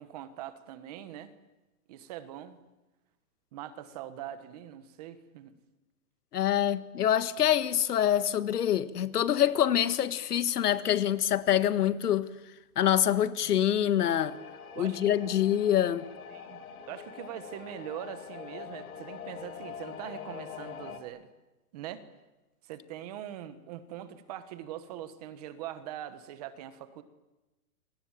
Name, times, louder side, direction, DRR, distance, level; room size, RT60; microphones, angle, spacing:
voice 1, 0.0-1.3 1.9-2.6 3.5-5.6 13.4-13.5 14.7-15.3 16.3-21.3 21.7-22.1 22.6-27.0, right 11 dB, 25° right, 1.3 m, -42 dB
voice 2, 6.3-12.3 12.8-14.4 14.8-16.1, left 10 dB, 85° left, 1.8 m, -25 dB
sound 1, 14.2-21.0, left 7 dB, 65° left, 3.3 m, -44 dB
29.5 x 24.5 x 7.4 m
hypercardioid pair, 175°, 45 cm